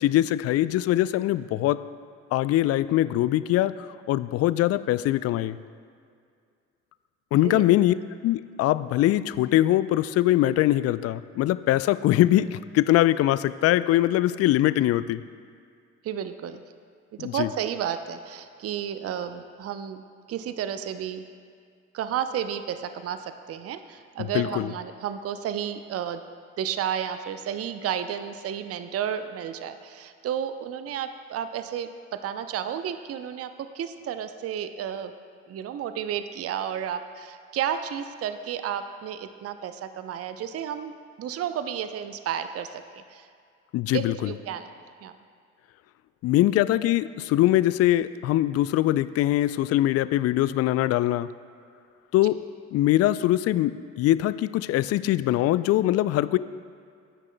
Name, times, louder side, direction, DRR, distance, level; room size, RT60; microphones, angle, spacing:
voice 1, 0.0-1.8 2.3-5.6 7.3-7.9 8.2-15.2 17.2-17.5 24.2-24.7 43.7-44.3 46.2-51.3 52.1-52.4 52.7-56.4, left 14 dB, 40° left, 16 dB, 0.4 m, -22 dB
voice 2, 16.0-16.6 17.2-20.0 20.3-21.2 21.9-26.2 26.6-35.1 35.5-40.9 41.2-43.3 43.9-44.7 45.0-45.1, right 9 dB, 40° right, 10 dB, 0.6 m, -32 dB
21.5 x 9.7 x 2.2 m, 2.2 s
figure-of-eight pair, 45°, 38 cm